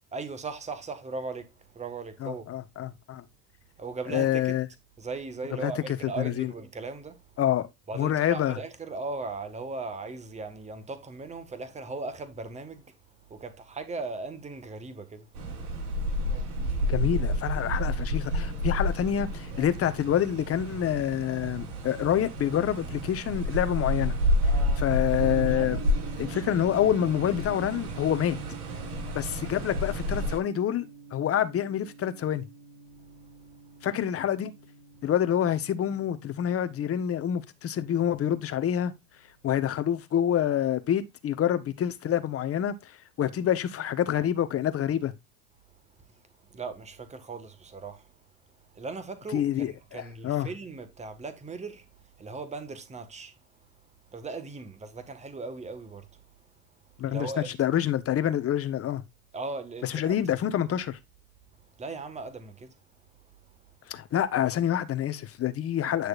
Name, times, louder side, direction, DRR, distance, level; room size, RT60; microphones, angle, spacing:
voice 1, 0.1-2.5 3.8-4.6 5.0-7.2 7.9-12.9 13.3-15.3 46.1-48.1 48.7-53.3 54.1-56.2 57.1-57.5 59.3-60.2 61.8-62.8, right 3 dB, 15° right, 1.7 m, -38 dB
voice 2, 2.2-3.2 4.1-4.6 5.6-5.7 6.2-6.5 7.4-7.7 7.9-8.6 16.9-24.1 24.8-25.8 26.2-28.4 29.1-32.4 33.8-34.5 35.0-38.9 39.4-42.8 43.2-45.1 49.3-50.5 57.0-59.0 59.9-61.0 63.9-66.1, left 10 dB, 30° left, 1.3 m, -27 dB
sound 1, 15.3-30.4, equal, 80° right, 5.9 m, -30 dB
Gong, 25.2-39.3, right 7 dB, 55° right, 6.3 m, -47 dB
10.0 x 6.4 x 2.5 m
hypercardioid pair, 105°, 45 cm